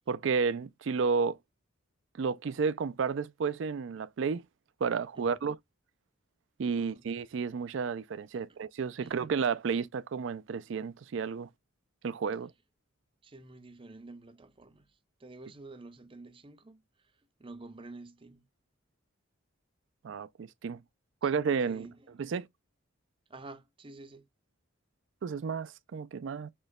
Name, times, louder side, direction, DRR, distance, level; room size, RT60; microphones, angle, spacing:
voice 1, 0.1-1.4 2.2-4.4 4.8-5.6 6.6-11.5 12.0-12.5 20.0-20.8 21.2-21.9 22.2-22.5 25.2-26.5, right 5 dB, 65° right, 0.4 m, -31 dB
voice 2, 5.1-5.5 6.8-7.1 8.3-8.6 9.0-9.2 13.2-18.5 21.2-21.3 21.7-22.1 23.3-24.3, right 2 dB, 25° right, 0.6 m, -50 dB
6.5 x 3.0 x 2.2 m
head